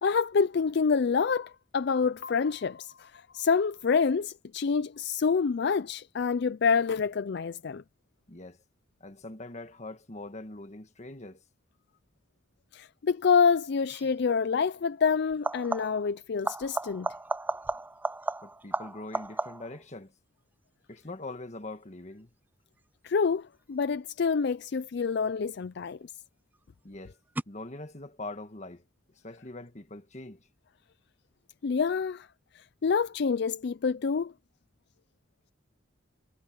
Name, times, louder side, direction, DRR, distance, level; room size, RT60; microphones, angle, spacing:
voice 1, 0.0-7.8 12.7-17.1 23.0-26.0 31.6-32.3 32.5-34.3, left 5 dB, 60° left, 0.4 m, -27 dB
voice 2, 9.0-11.4 18.4-20.1 20.9-22.3 26.8-27.2 27.5-28.8 29.2-30.5, left 2 dB, 35° left, 1.5 m, -42 dB
sound 1, 13.9-14.1 15.3-16.1 16.4-19.8 25.3-25.8 27.4-27.5, right 2 dB, 10° right, 0.3 m, -34 dB
head